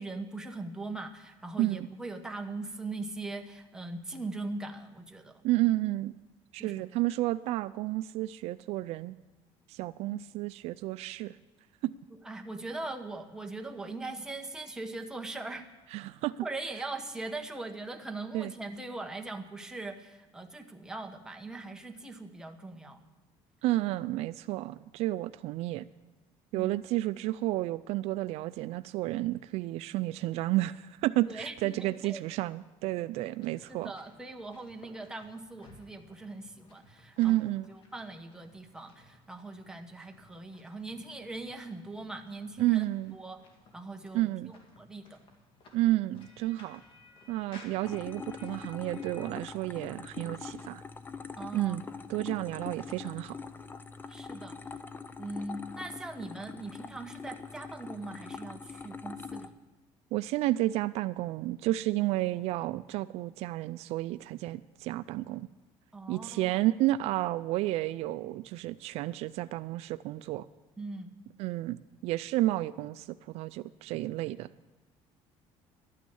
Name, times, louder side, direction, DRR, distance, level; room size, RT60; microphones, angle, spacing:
voice 1, 0.0-5.4 6.6-6.9 12.2-15.7 16.4-23.0 26.5-26.7 31.2-32.2 33.7-37.4 37.7-42.9 43.1-43.4 43.7-45.2 51.4-51.8 54.1-54.6 55.2-59.5 65.9-66.6 70.8-71.1, right 2 dB, 5° right, 4 dB, 1.0 m, -41 dB
voice 2, 1.6-1.9 5.4-6.1 6.5-9.1 9.7-11.4 11.8-11.9 15.9-16.5 18.3-18.5 23.6-25.9 26.5-33.9 37.2-37.7 42.6-43.2 44.1-44.5 45.7-46.8 47.3-50.8 51.5-51.8 52.1-53.4 60.1-65.5 66.1-70.5 71.4-74.5, right 16 dB, 70° right, 14 dB, 0.4 m, -31 dB
sound 1, 33.4-49.3, left 2 dB, 50° left, 2.2 m, -58 dB
sound 2, 47.8-59.5, left 5 dB, 20° left, 0.5 m, -43 dB
12.0 x 9.2 x 7.0 m, 1.2 s
cardioid pair, 140°, 11 cm